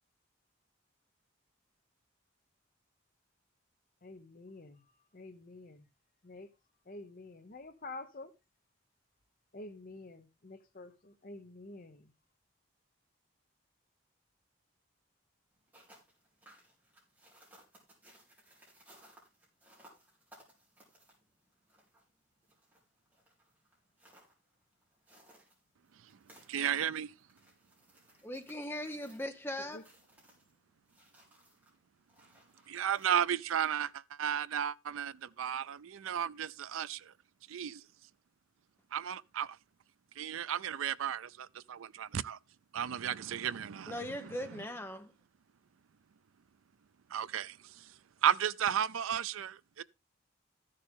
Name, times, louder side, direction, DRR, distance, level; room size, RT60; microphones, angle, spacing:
voice 1, 4.0-4.9 5.1-5.9 6.2-6.5 6.9-8.3 9.5-12.1 29.6-29.8, left 2 dB, 45° left, 0.9 m, -48 dB
sound 1, 15.5-33.8, right 1 dB, 10° right, 4.2 m, -63 dB
voice 2, 25.9-27.1 32.7-37.1 37.5-37.8 38.9-39.6 40.2-42.4 42.7-44.6 47.1-49.8, right 9 dB, 85° right, 0.4 m, -34 dB
voice 3, 28.2-29.8 43.9-45.1, left 1 dB, 10° left, 0.9 m, -39 dB
14.0 x 6.7 x 3.6 m
head